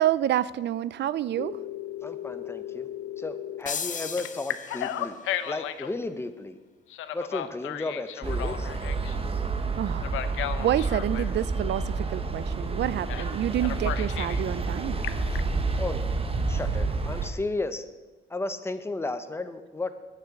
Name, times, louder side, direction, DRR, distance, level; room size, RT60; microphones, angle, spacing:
voice 1, 0.0-1.6 9.7-10.1 10.6-15.0, right 12 dB, 60° right, 18 dB, 0.4 m, -28 dB
Telephone, 1.4-3.6 4.2-5.9 6.9-9.2 10.0-11.3 13.1-13.3 13.6-14.4 14.8-15.4, left 12 dB, 85° left, 0.7 m, -34 dB
voice 2, 2.0-2.9 3.2-5.2 5.4-6.6 7.1-8.7 15.3-15.4 15.8-16.1 16.5-17.8 18.3-19.9, left 2 dB, 10° left, 9 dB, 0.9 m, -33 dB
sound 1, 3.7-5.3, left 6 dB, 40° left, 0.8 m, -36 dB
sound 2, 8.2-17.3, right 3 dB, 30° right, 1.1 m, -29 dB
9.6 x 6.7 x 8.0 m, 1.2 s
cardioid pair, 90°, 20 cm